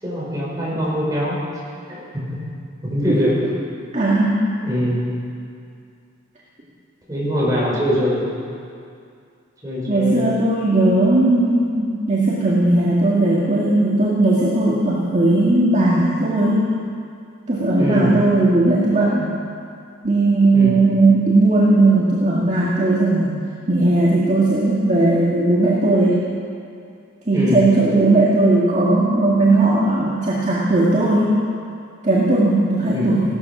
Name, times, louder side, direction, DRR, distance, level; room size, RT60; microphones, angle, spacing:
voice 1, 0.0-1.4 1.9-2.5 2.8-3.5 4.6-5.2 7.1-8.5 9.6-10.4 17.8-18.2 20.5-20.9 27.3-27.7 32.9-33.2, left 1 dB, 20° right, -6 dB, 5.2 m, -23 dB
voice 2, 3.9-4.4 9.9-16.7 17.5-19.3 20.0-23.4 23.7-26.2 27.3-31.3 32.0-33.2, right 2 dB, 35° right, -6 dB, 1.9 m, -17 dB
16.5 x 13.0 x 6.1 m, 2.4 s
head